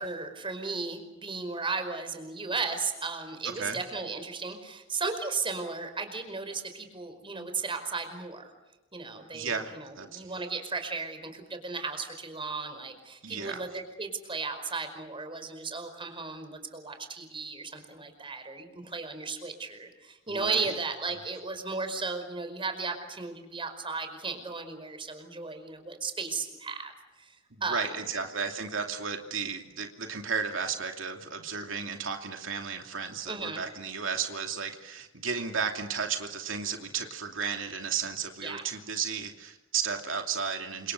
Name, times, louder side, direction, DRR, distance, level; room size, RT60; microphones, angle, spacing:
voice 1, 0.0-8.5 8.9-27.3 27.6-27.9 33.3-33.6 38.4-38.7, right 4 dB, 25° right, 7 dB, 5.1 m, -35 dB
voice 2, 9.3-10.3 13.2-13.6 20.3-20.7 27.7-40.9, right 6 dB, 85° right, 4 dB, 2.7 m, -34 dB
29.5 x 27.0 x 6.6 m, 1.1 s
head